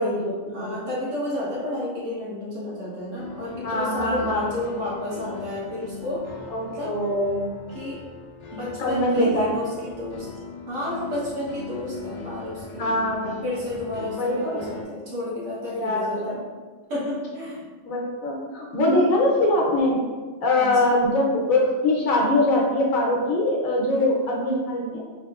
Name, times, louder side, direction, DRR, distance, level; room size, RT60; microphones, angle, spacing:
voice 1, 0.0-0.8 3.6-4.4 6.5-7.6 8.8-9.6 12.7-13.4 14.1-14.6 15.7-16.4 17.9-20.0 20.4-25.0, left 1 dB, 85° left, -2 dB, 1.2 m, -23 dB
voice 2, 0.5-6.4 6.7-6.9 7.7-8.0 8.5-10.3 10.7-12.8 13.4-16.5 16.9-17.6 18.8-19.1 20.5-20.9 23.9-24.1, left 1 dB, 70° right, -7 dB, 1.4 m, -31 dB
sound 1, 3.2-14.8, left 4 dB, 60° left, 0.5 m, -40 dB
3.7 x 2.8 x 2.3 m, 1.4 s
omnidirectional pair, 1.4 m